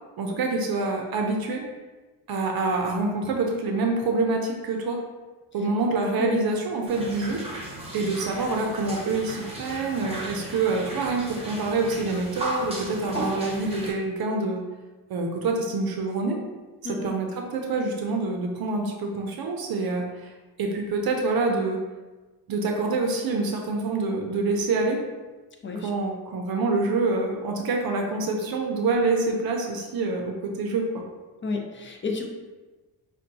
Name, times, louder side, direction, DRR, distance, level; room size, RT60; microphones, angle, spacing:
voice 1, 0.2-1.6 2.3-5.0 5.5-7.4 7.9-14.6 15.1-16.4 16.9-20.3 20.6-21.8 22.5-25.0 25.8-31.0, right 3 dB, 55° right, 2 dB, 0.6 m, -26 dB
sound 1, 6.9-13.9, right 1 dB, 15° right, 1.0 m, -35 dB
voice 2, 31.4-32.3, left 3 dB, 25° left, 2 dB, 0.6 m, -31 dB
5.4 x 2.3 x 2.6 m, 1.2 s
cardioid pair, 100°, 44 cm